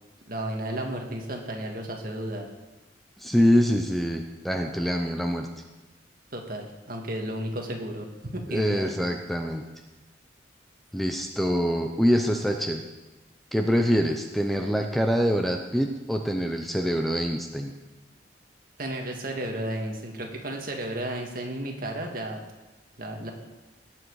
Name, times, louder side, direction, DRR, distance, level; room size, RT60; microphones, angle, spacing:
voice 1, 0.3-2.5 6.3-8.9 18.8-22.4 23.0-23.3, right 1 dB, 50° right, 2 dB, 1.9 m, -33 dB
voice 2, 3.2-5.5 8.5-9.6 10.9-12.8 13.5-17.7, equal, ahead, 4 dB, 0.7 m, -25 dB
18.5 x 7.6 x 4.8 m, 1.1 s
head